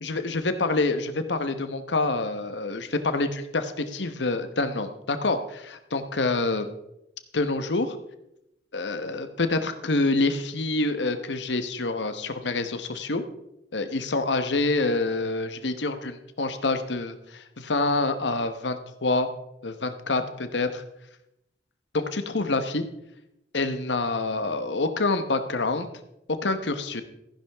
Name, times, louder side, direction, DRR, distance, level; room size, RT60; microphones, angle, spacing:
voice 1, 0.0-6.7 7.3-8.0 8.7-13.2 13.7-19.3 19.6-20.8 21.9-22.8 23.5-25.9 26.3-27.0, left 3 dB, 85° left, 9 dB, 1.1 m, -27 dB
14.5 x 10.5 x 3.5 m, 0.84 s
head